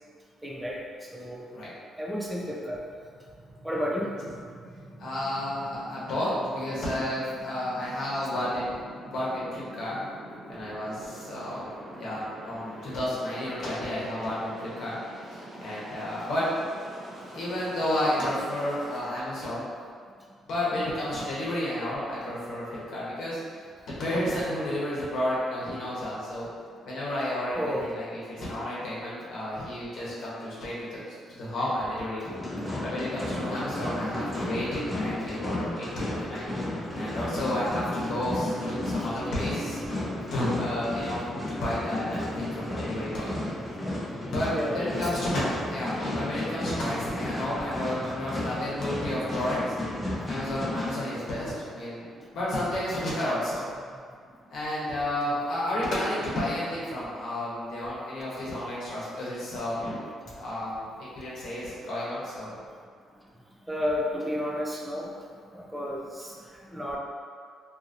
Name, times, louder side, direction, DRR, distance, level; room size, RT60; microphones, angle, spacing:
voice 1, 0.4-1.5 2.0-2.8 3.6-4.1 20.8-20.9 27.6-27.9 44.5-45.1 63.7-65.1 65.5-66.3 66.7-67.0, equal, 10° right, -3 dB, 0.4 m, -31 dB
sound 1, 2.5-19.0, right 1 dB, 45° right, 0.8 m, -46 dB
voice 2, 5.0-8.8 9.1-10.0 10.5-15.0 15.3-16.5 17.3-19.7 20.5-23.4 24.0-26.5 26.8-32.2 32.8-36.5 36.9-39.8 40.3-43.3 44.3-49.7 50.2-53.7 54.5-60.0 60.4-60.8 61.2-62.5, left 1 dB, 70° left, -7 dB, 0.9 m, -31 dB
sound 2, 32.3-50.9, left 1 dB, 10° left, 0.8 m, -33 dB
2.8 x 2.7 x 2.5 m, 2.1 s
cardioid pair, 90°, 0 cm